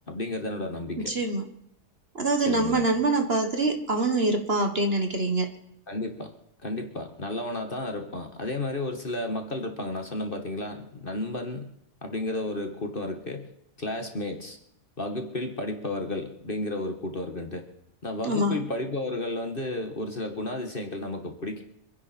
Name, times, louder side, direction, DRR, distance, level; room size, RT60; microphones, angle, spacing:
voice 1, 0.1-1.2 2.5-2.8 5.9-6.3 6.6-11.7 12.0-13.5 13.8-14.6 15.0-17.7 18.0-21.6, left 2 dB, 35° left, 5 dB, 1.7 m, -32 dB
voice 2, 1.0-1.4 2.1-5.5 18.2-18.6, right 2 dB, 40° right, 5 dB, 1.7 m, -25 dB
26.0 x 10.5 x 4.4 m, 0.74 s
omnidirectional pair, 1.7 m